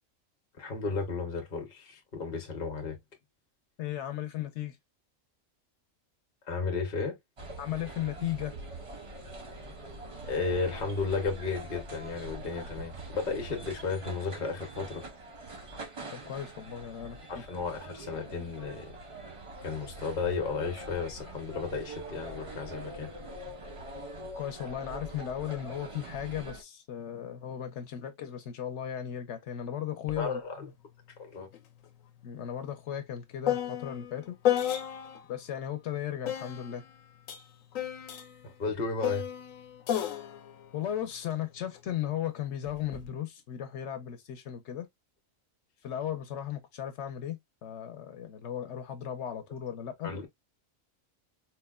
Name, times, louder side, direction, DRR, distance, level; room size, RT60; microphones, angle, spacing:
voice 1, 0.6-3.0 6.5-7.2 10.3-15.0 17.3-18.9 19.6-23.1 30.2-30.7 31.2-31.5 38.4-39.3 50.0-50.3, left 4 dB, 45° left, 0.8 m, -34 dB
voice 2, 3.8-4.8 7.6-8.5 16.1-17.4 24.3-30.7 32.2-34.4 35.3-36.8 40.7-44.9 45.8-50.1, left 10 dB, 65° left, 0.9 m, -36 dB
sound 1, 7.4-26.6, right 2 dB, 40° right, 0.5 m, -44 dB
sound 2, 30.1-30.2 30.6-35.3 36.2-41.8 42.6-43.1, left 11 dB, 85° left, 1.0 m, -34 dB
4.1 x 2.1 x 2.2 m
omnidirectional pair, 1.4 m